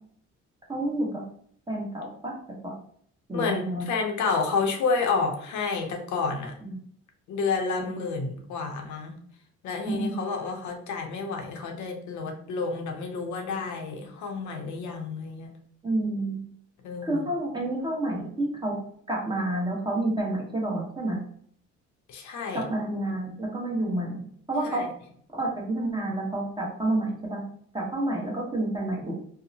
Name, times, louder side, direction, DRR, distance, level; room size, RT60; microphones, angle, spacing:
voice 1, 0.7-1.2 1.7-2.3 2.6-2.7 3.3-3.9 6.6-6.8 7.8-8.2 9.8-10.2 15.8-16.4 17.0-18.7 19.1-21.2 22.5-24.2 24.5-24.8 25.3-27.4 27.7-29.2, right 1 dB, 15° right, -2 dB, 0.9 m, -29 dB
voice 2, 3.3-6.5 7.3-9.2 9.6-15.5 16.8-17.2 22.1-22.6 24.6-24.9, left 4 dB, 75° left, 3 dB, 0.6 m, -30 dB
2.7 x 2.0 x 2.7 m, 0.62 s
cardioid pair, 90°, 30 cm